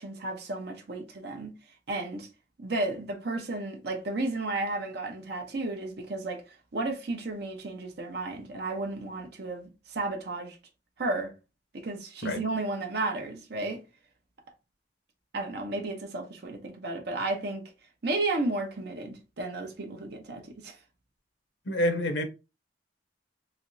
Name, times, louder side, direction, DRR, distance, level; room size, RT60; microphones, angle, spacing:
voice 1, 0.0-1.5 1.9-2.3 2.6-10.6 11.0-11.3 11.7-13.8 15.3-17.6 18.0-20.8, right 2 dB, 60° right, 0.7 m, -33 dB
voice 2, 21.7-22.2, left 1 dB, 70° left, 0.7 m, -28 dB
3.3 x 2.9 x 2.6 m
head